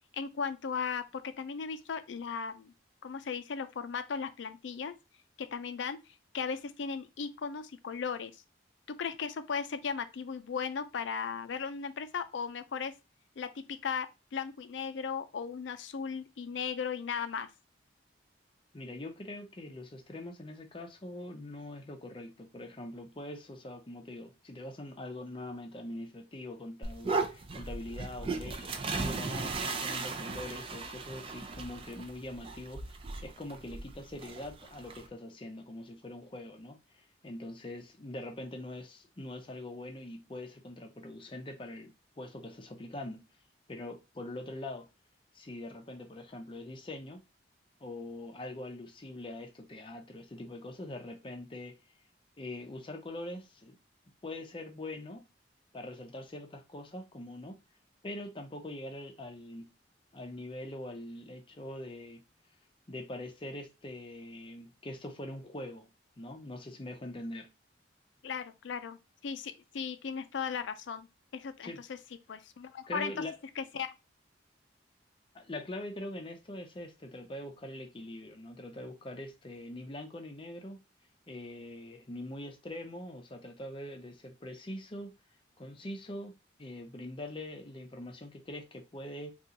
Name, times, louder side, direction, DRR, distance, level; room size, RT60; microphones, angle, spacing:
voice 1, 0.1-2.7 3.0-4.9 5.4-6.0 6.3-8.3 9.0-12.9 13.4-14.1 14.3-17.5 68.2-71.1 71.3-72.0 72.3-73.1 73.6-73.9, left 6 dB, 80° left, 0.4 m, -36 dB
voice 2, 18.7-43.2 43.7-44.9 45.3-47.2 47.8-51.8 52.4-53.8 54.2-55.3 55.7-57.6 58.0-59.7 60.1-62.2 62.9-65.9 66.2-67.5 71.6-71.8 72.9-73.4 75.3-80.8 81.3-85.1 85.6-86.3 86.6-89.3, left 1 dB, 30° left, 0.5 m, -43 dB
sound 1, 26.8-35.1, right 3 dB, 30° right, 0.4 m, -37 dB
3.7 x 2.4 x 2.8 m
head